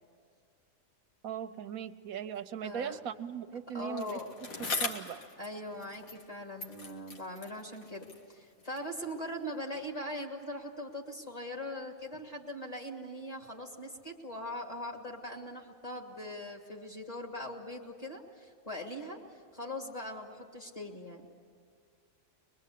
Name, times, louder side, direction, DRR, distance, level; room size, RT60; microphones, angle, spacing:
voice 1, 1.2-4.2 4.7-5.2, right 8 dB, 85° right, 9 dB, 1.3 m, -39 dB
voice 2, 2.6-3.0 3.7-4.3 4.6-4.7 5.4-19.2 19.5-21.2, left 1 dB, 25° left, 0 dB, 2.8 m, -41 dB
Bicycle, 4.0-6.3 6.6-9.0 9.7-9.8, left 3 dB, 85° left, 2.2 m, -41 dB
23.5 x 22.5 x 8.3 m, 2.2 s
omnidirectional pair, 1.4 m